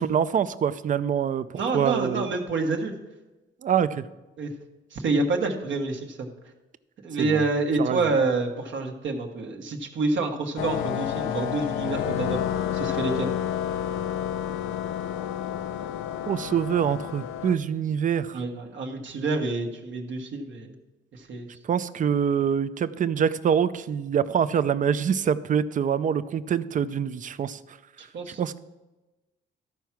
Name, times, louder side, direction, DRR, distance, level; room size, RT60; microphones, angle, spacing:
voice 1, 0.0-1.5 1.7-2.3 3.6-4.0 7.2-7.4 7.8-8.0 16.3-18.4 21.7-27.6 28.3-28.6, right 8 dB, 40° right, 15 dB, 0.5 m, -25 dB
voice 2, 1.6-2.9 4.4-4.5 4.9-6.3 7.0-12.4 12.7-13.3 18.3-20.7 21.1-21.5 28.1-28.4, right 3 dB, 70° right, 2 dB, 1.3 m, -27 dB
sound 1, 10.6-17.6, left 10 dB, 90° left, 0.5 m, -30 dB
13.0 x 4.7 x 5.9 m, 1.1 s
cardioid pair, 90°, 20 cm